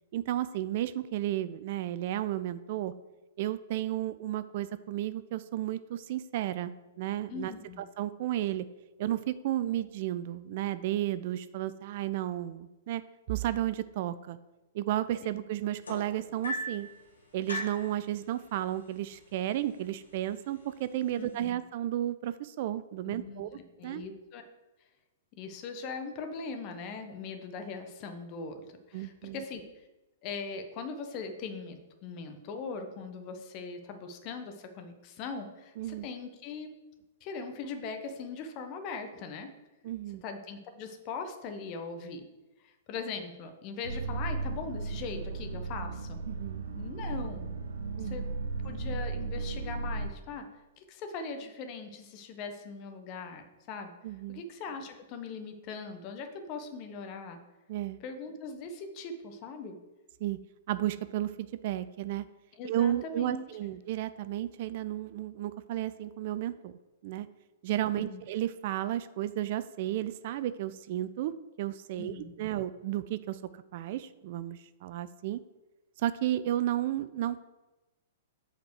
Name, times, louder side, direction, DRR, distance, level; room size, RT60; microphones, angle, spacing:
voice 1, 0.1-2.9 3.4-7.5 8.0-8.6 9.0-13.0 13.3-14.4 14.7-16.9 17.3-24.0 28.9-29.4 35.8-36.1 39.8-40.2 46.3-46.6 48.0-48.2 54.0-54.4 57.7-58.0 60.2-60.4 60.7-62.3 62.6-66.7 67.0-67.3 67.6-71.3 71.6-73.4 73.7-75.4 76.0-77.4, right 13 dB, 50° right, 14 dB, 0.4 m, -33 dB
voice 2, 7.3-7.8 21.2-21.5 23.0-24.4 25.4-29.6 30.2-36.7 37.2-39.5 40.2-42.2 42.6-46.2 46.7-47.5 48.0-48.3 48.6-50.5 50.8-53.9 54.3-57.4 58.0-59.8 62.5-63.8 68.0-68.2 72.0-72.5, left 4 dB, 40° left, 6 dB, 1.1 m, -40 dB
sound 1, 15.8-16.9 17.5-17.9 18.9-19.0 19.4-19.8 20.5-20.6, left 1 dB, 85° left, 2.0 m, -36 dB
sound 2, 43.8-50.1, right 3 dB, 75° right, 0.9 m, -35 dB
8.1 x 4.5 x 4.8 m, 1.1 s
figure-of-eight pair, 110°, 0 cm